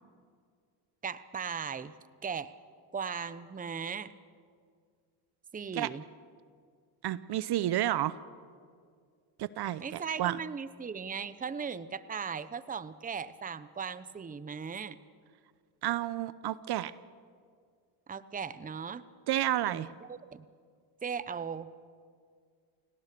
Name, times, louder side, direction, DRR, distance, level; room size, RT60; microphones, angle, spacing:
voice 1, 1.0-1.9 2.2-2.5 2.9-4.1 5.5-6.0 9.8-15.0 18.1-19.0 19.6-20.5 21.0-21.7, right 6 dB, 15° right, 16 dB, 0.8 m, -38 dB
voice 2, 7.0-8.1 9.4-10.4 15.8-16.9 19.3-19.9, right 13 dB, 55° right, 17 dB, 0.8 m, -30 dB
29.5 x 18.0 x 6.8 m, 2.1 s
supercardioid pair, 90°, 49 cm